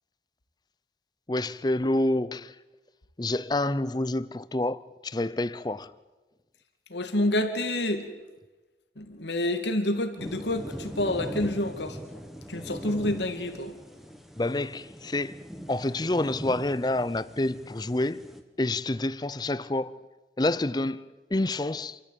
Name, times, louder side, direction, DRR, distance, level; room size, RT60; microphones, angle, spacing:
voice 1, 1.3-2.5 3.2-5.9 14.4-15.4 15.7-18.3 18.6-20.0 20.4-22.0, left 2 dB, 25° left, 0.6 m, -28 dB
voice 2, 6.9-8.1 9.0-12.0 12.5-13.7, left 1 dB, 80° left, 2.5 m, -28 dB
sound 1, 10.2-18.4, equal, ahead, 1.6 m, -41 dB
27.5 x 14.0 x 8.6 m
head